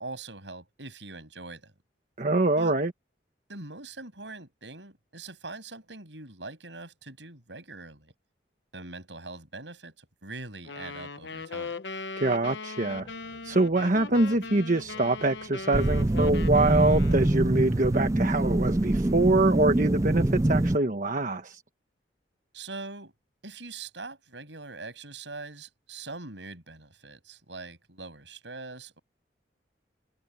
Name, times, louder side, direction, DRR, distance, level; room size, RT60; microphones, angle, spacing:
voice 1, 0.0-1.7 2.6-2.7 3.5-8.1 8.7-11.7 22.5-23.1 23.4-29.0, right 3 dB, 80° right, 7.5 m, -42 dB
voice 2, 2.2-2.9 12.2-13.1 13.4-21.6, right 2 dB, 45° right, 1.2 m, -24 dB
sound 1, 10.6-17.5, left 4 dB, 80° left, 1.1 m, -39 dB
sound 2, 12.9-18.6, equal, 30° left, 7.4 m, -55 dB
sound 3, 15.7-20.8, right 1 dB, 20° right, 0.5 m, -24 dB
head